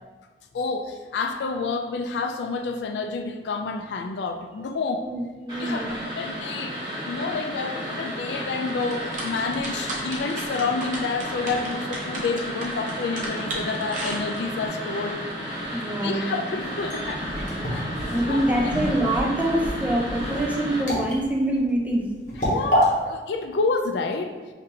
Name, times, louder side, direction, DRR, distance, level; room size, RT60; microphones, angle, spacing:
voice 1, 0.5-5.1 5.6-15.2 15.9-17.3 17.7-18.7 22.4-24.3, left 4 dB, 80° left, 6 dB, 0.4 m, -29 dB
voice 2, 5.0-5.9 15.7-16.3 18.1-22.1, right 1 dB, 10° right, -2 dB, 0.4 m, -25 dB
sound 1, 5.5-20.8, equal, 25° right, 1.4 m, -33 dB
sound 2, 8.8-14.7, right 2 dB, 45° right, 0.7 m, -35 dB
sound 3, 16.6-22.9, equal, 45° left, 1.1 m, -28 dB
5.1 x 2.6 x 2.7 m, 1.4 s
head